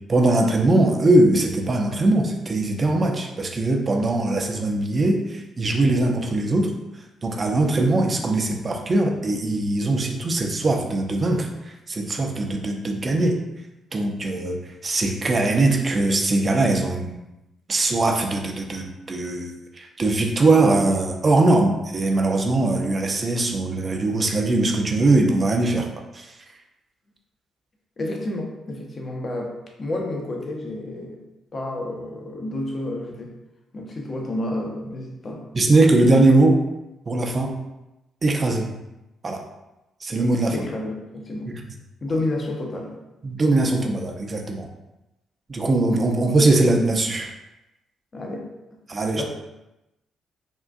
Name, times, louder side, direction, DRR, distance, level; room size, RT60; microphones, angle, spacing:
voice 1, 0.1-6.7 7.2-13.4 13.9-17.2 17.7-25.9 26.1-26.4 35.5-36.6 37.1-37.5 38.2-38.7 39.2-39.4 40.0-40.5 43.2-44.7 45.5-47.3 48.9-49.2, right 2 dB, 40° right, 3 dB, 0.5 m, -21 dB
voice 2, 28.0-31.2 31.5-33.3 33.7-35.4 40.5-41.5 42.0-43.0 48.1-48.8 49.2-49.3, left 1 dB, 45° left, 1 dB, 0.7 m, -30 dB
3.6 x 2.5 x 2.4 m, 0.95 s
hypercardioid pair, 50°, 0 cm